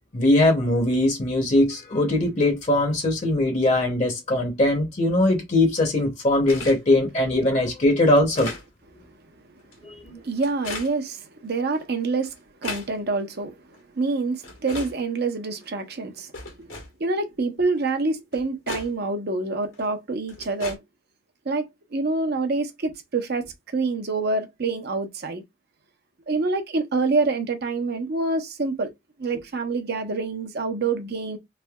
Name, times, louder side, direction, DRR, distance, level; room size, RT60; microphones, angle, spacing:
voice 1, 0.1-8.5 9.8-10.2, left 1 dB, 35° left, 0.7 m, -21 dB
sound 1, 6.5-6.8 7.4-7.5 8.1-8.6 9.6-9.7 10.4-10.9 11.8-11.9 12.2-12.9 13.7-13.8 14.4-14.9 15.6-15.7 16.3-16.9 17.9-18.0 18.3-18.9 19.7-19.8 20.3-20.8, left 3 dB, 90° left, 1.4 m, -35 dB
voice 2, 10.2-12.3 12.6-13.6 14.0-16.3 16.6-16.7 17.0-20.8 21.5-25.4 26.3-28.9 29.2-31.4, right 3 dB, 55° right, 0.7 m, -26 dB
3.3 x 2.6 x 2.2 m
head